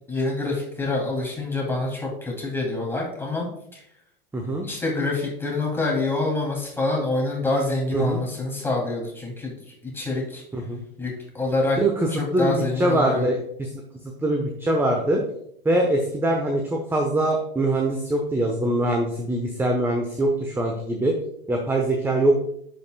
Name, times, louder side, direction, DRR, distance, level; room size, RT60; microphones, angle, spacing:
voice 1, 0.1-3.5 3.7-3.8 4.6-9.5 9.8-10.4 11.0-11.8 12.2-13.3, left 2 dB, 10° left, -2 dB, 2.7 m, -26 dB
voice 2, 4.3-4.7 7.9-8.2 10.5-10.8 11.8-13.7 14.2-15.2 15.6-21.1 21.5-22.3, right 1 dB, 10° right, 2 dB, 0.9 m, -23 dB
10.5 x 5.4 x 2.3 m, 0.71 s
hypercardioid pair, 95°, 29 cm